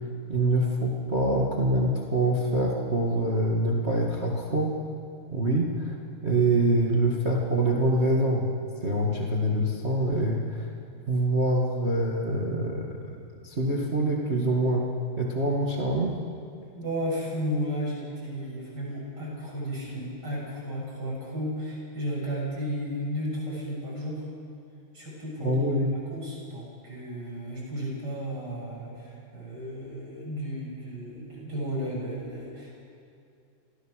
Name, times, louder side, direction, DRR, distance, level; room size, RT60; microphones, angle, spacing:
voice 1, 0.3-4.7 5.3-5.9 6.2-8.5 8.8-10.7 11.1-14.8 15.2-16.2 25.4-25.9, right 1 dB, 70° right, -2 dB, 0.6 m, -25 dB
voice 2, 16.7-24.2 24.9-25.6 26.1-32.7, equal, 25° right, -5 dB, 7.4 m, -33 dB
27.0 x 17.5 x 6.5 m, 2.5 s
omnidirectional pair, 4.8 m